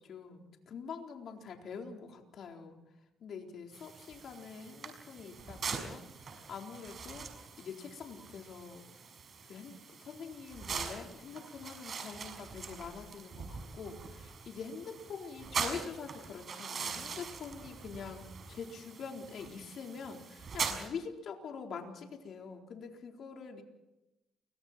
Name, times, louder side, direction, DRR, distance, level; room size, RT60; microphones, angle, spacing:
voice 1, 0.0-2.8 3.2-9.1 9.4-23.6, left 5 dB, 65° left, 2 dB, 4.1 m, -45 dB
sound 1, 3.7-20.9, right 5 dB, 50° right, 6.1 m, -42 dB
29.5 x 24.0 x 4.4 m, 0.94 s
cardioid pair, 90°, 0 cm